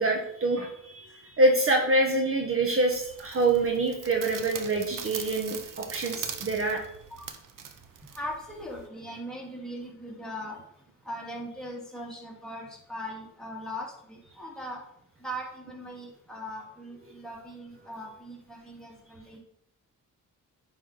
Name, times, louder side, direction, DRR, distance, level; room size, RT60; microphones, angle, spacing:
voice 1, 0.0-6.8, right 2 dB, 40° right, 2 dB, 1.1 m, -26 dB
sound 1, 2.9-8.9, right 7 dB, 75° right, 0.9 m, -41 dB
voice 2, 8.1-10.6 11.0-14.8 15.2-19.4, equal, ahead, -4 dB, 2.3 m, -39 dB
9.3 x 5.2 x 4.0 m, 0.75 s
cardioid pair, 110°, 33 cm